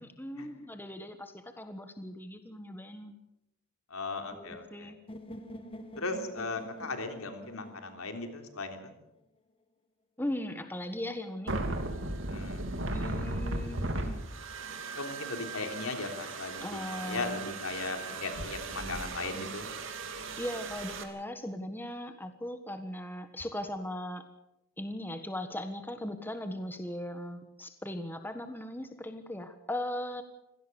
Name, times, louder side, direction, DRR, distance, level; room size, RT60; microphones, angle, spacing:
voice 1, 0.0-3.2 4.3-5.0 10.2-11.5 12.9-14.2 16.6-17.5 20.4-24.2 24.8-30.2, left 1 dB, 10° left, 8 dB, 1.4 m, -38 dB
voice 2, 3.9-4.9 6.0-8.9 12.3-12.6 15.0-19.7, left 3 dB, 75° left, 6 dB, 3.4 m, -37 dB
sound 1, 5.1-9.0, equal, 25° left, 1.4 m, -47 dB
sound 2, 11.5-21.0, right 2 dB, 60° right, 2.8 m, -37 dB
25.0 x 17.5 x 7.0 m, 0.85 s
head